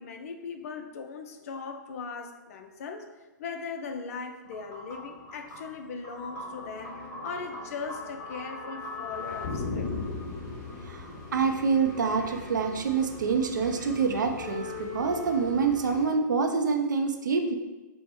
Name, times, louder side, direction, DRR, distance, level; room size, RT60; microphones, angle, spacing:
voice 1, 0.0-3.1 3.4-7.0 7.2-9.9, left 5 dB, 50° left, 6 dB, 0.5 m, -39 dB
sound 1, 4.5-16.1, left 3 dB, 30° left, 0.9 m, -39 dB
voice 2, 10.8-17.6, right 5 dB, 75° right, 5 dB, 0.6 m, -26 dB
4.3 x 2.1 x 4.6 m, 1.2 s
figure-of-eight pair, 120°, 10 cm